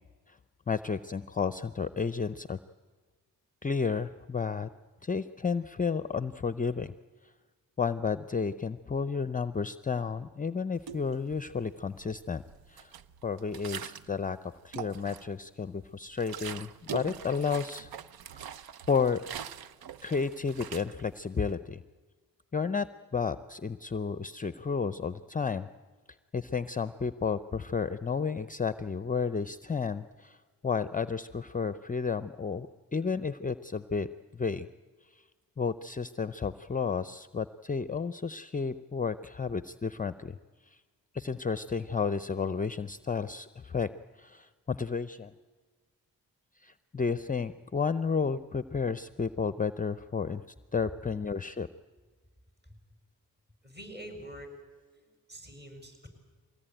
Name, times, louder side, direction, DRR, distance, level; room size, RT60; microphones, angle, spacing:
voice 1, 0.7-2.6 3.6-4.7 5.0-6.9 7.2-7.3 7.8-12.4 12.7-12.9 13.2-17.9 18.3-18.5 18.9-19.2 20.0-21.8 22.5-25.7 26.3-30.4 30.6-34.1 34.3-34.7 35.1-35.2 35.6-40.4 40.7-40.8 41.1-43.9 44.2-45.3 46.6-50.4 50.7-51.7, left 5 dB, 25° left, 13 dB, 0.6 m, -32 dB
sound 1, 10.8-11.6 12.0-14.2 14.6-15.4 15.8-21.5, right 9 dB, 80° right, 0.8 m, -43 dB
voice 2, 53.6-54.5 55.0-56.1, right 1 dB, 25° right, 5 dB, 6.8 m, -46 dB
23.0 x 18.5 x 9.1 m, 1.4 s
cardioid pair, 65°, 36 cm